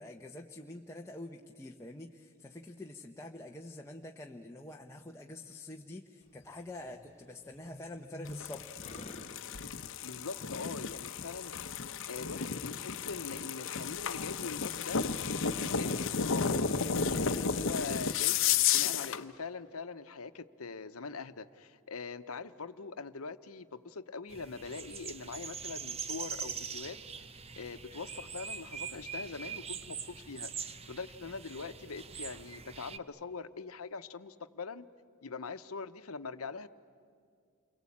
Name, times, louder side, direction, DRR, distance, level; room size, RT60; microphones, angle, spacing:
voice 1, 0.0-8.7, left 1 dB, 15° left, 1 dB, 0.9 m, -46 dB
sound 1, 6.2-12.3, left 2 dB, 30° left, 1.8 m, -54 dB
sound 2, 8.3-19.2, left 6 dB, 65° left, 0.9 m, -33 dB
voice 2, 10.0-11.5 12.1-15.2 15.6-27.3 27.6-34.8 35.2-36.7, left 4 dB, 90° left, 11 dB, 0.9 m, -43 dB
sound 3, 24.3-33.0, right 6 dB, 30° right, 0.8 m, -43 dB
29.5 x 23.0 x 8.6 m, 2.3 s
head